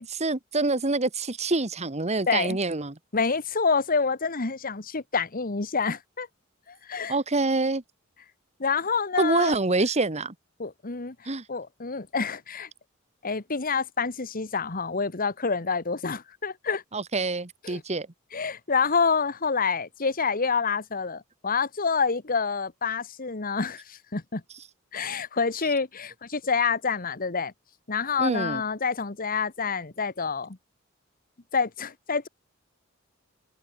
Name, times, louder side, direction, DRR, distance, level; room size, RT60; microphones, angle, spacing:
voice 1, 0.2-2.9 7.1-7.8 9.2-10.3 11.2-11.4 16.9-18.1 28.2-28.6, right 3 dB, 35° right, 1.5 m, -26 dB
voice 2, 2.3-2.6 3.1-6.3 6.7-7.1 8.6-9.6 10.6-12.7 13.2-16.8 17.6-17.8 18.3-24.4 24.9-27.5 27.9-30.6 31.5-32.3, left 5 dB, 45° left, 1.4 m, -27 dB
open air
head